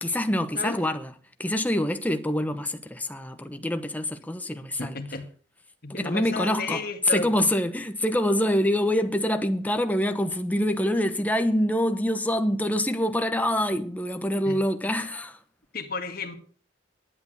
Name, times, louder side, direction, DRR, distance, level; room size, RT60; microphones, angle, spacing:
voice 1, 0.0-1.1 1.4-5.0 5.9-6.8 7.1-15.4, left 1 dB, 10° left, 1.0 m, -25 dB
voice 2, 0.5-0.9 4.8-5.3 5.8-7.3 14.5-14.6 15.7-16.4, left 3 dB, 50° left, 2.0 m, -32 dB
11.0 x 9.3 x 6.4 m
head